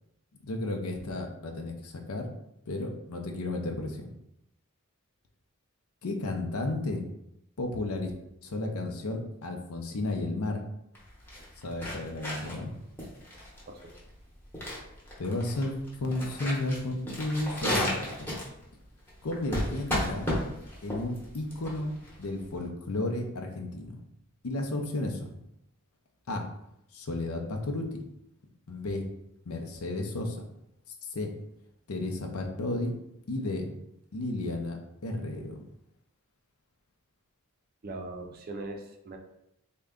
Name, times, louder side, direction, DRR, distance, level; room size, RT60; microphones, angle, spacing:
voice 1, 0.4-2.3 2.7-4.1 6.0-7.0 7.6-8.1 8.4-10.6 11.6-12.7 15.2-18.3 19.2-20.3 20.8-21.9 22.2-24.0 24.4-25.3 26.3-26.5 26.9-28.0 28.7-29.1 29.5-30.4 31.1-31.3 31.9-32.9 33.3-33.7 34.1-35.6, left 2 dB, 70° left, 3 dB, 0.6 m, -33 dB
sound 1, 10.9-22.6, left 1 dB, 10° left, 0.9 m, -34 dB
voice 2, 37.8-39.2, right 2 dB, 45° right, 4 dB, 0.5 m, -40 dB
3.6 x 2.2 x 3.6 m, 0.80 s
head